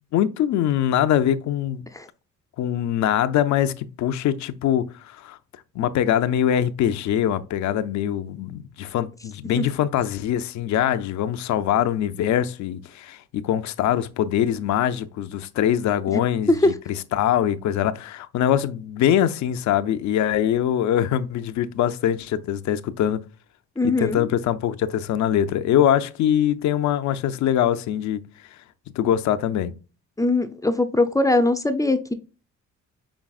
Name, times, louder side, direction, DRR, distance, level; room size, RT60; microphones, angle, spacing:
voice 1, 0.1-1.8 2.6-5.4 5.8-23.2 23.8-28.2 29.0-29.7, left 10 dB, 70° left, 0.5 m, -23 dB
voice 2, 23.8-24.3 30.2-32.1, left 2 dB, 10° left, 0.5 m, -21 dB
6.1 x 3.3 x 2.3 m
cardioid pair, 90°, 30 cm